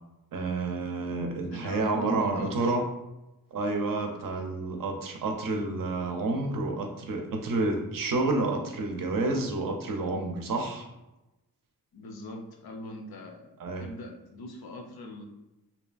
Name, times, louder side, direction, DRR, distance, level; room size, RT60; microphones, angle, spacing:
voice 1, 0.3-2.8 3.5-10.9 13.6-13.9, right 2 dB, 60° right, 2 dB, 0.5 m, -29 dB
voice 2, 1.5-2.8 11.9-15.2, left 1 dB, 75° left, 3 dB, 0.5 m, -41 dB
2.7 x 2.3 x 2.4 m, 0.97 s
wide cardioid pair, 125°, 38 cm